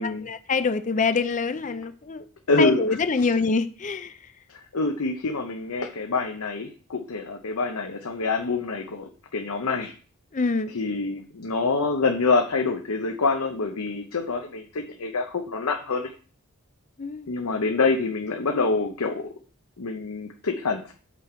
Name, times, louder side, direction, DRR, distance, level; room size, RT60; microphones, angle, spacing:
voice 1, 0.3-2.2 2.6-4.1 10.3-10.7 17.0-17.3, left 4 dB, 35° left, 0.4 m, -25 dB
voice 2, 2.5-3.4 4.5-9.9 10.7-16.1 17.3-19.3 19.8-20.9, left 3 dB, 80° left, 0.8 m, -26 dB
7.2 x 6.2 x 4.4 m
head